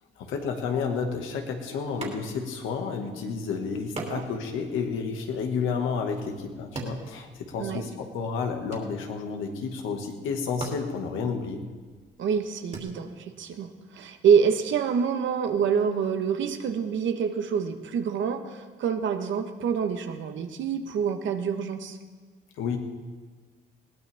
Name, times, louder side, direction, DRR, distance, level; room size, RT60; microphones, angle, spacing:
voice 1, 0.2-11.6 22.6-22.8, left 5 dB, 90° left, 3 dB, 1.8 m, -31 dB
sound 1, 2.0-2.6 2.9-3.0 4.0-7.9 8.2-9.4 10.1-10.2 10.5-12.8, right 3 dB, 35° right, 3.0 m, -40 dB
voice 2, 12.2-22.0, right 7 dB, 75° right, 7 dB, 1.3 m, -26 dB
20.5 x 17.0 x 3.6 m, 1.4 s
cardioid pair, 90°, 20 cm